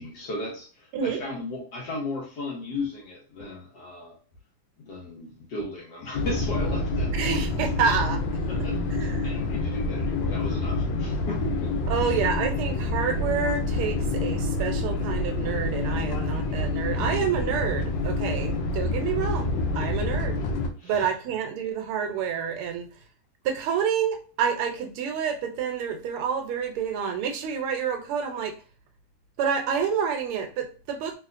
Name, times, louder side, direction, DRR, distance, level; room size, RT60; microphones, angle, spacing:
voice 1, 0.0-4.1 4.8-7.7 8.5-12.2 19.8-20.1 20.8-21.1, left 2 dB, 55° left, -2 dB, 1.4 m, -36 dB
sound 1, 6.1-20.7, left 2 dB, 75° left, 1.2 m, -27 dB
voice 2, 7.2-8.2 9.0-9.3 11.9-19.5 19.7-20.4 20.8-22.9 23.4-28.5 29.4-31.1, right 7 dB, 80° right, 5 dB, 1.5 m, -28 dB
3.4 x 3.1 x 2.4 m, 0.37 s
omnidirectional pair, 2.4 m